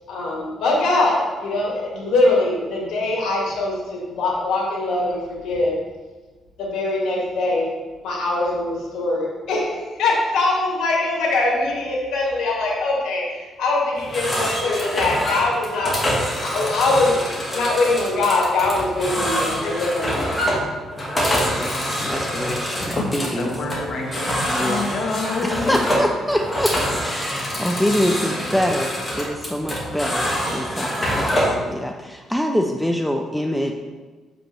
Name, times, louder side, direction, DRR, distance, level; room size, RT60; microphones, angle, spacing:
voice 1, 0.1-5.8 6.6-7.7 8.0-16.0 16.4-17.1 17.5-20.3, left 2 dB, 80° left, -3 dB, 2.1 m, -22 dB
sound 1, 14.0-31.6, equal, 20° left, 1.8 m, -25 dB
voice 2, 21.6-23.5 24.5-24.8 25.4-33.7, equal, 5° left, 3 dB, 0.4 m, -25 dB
voice 3, 23.0-25.8, left 3 dB, 60° left, 0 dB, 1.4 m, -27 dB
7.1 x 5.1 x 3.3 m, 1.3 s
cardioid pair, 90°, 0 cm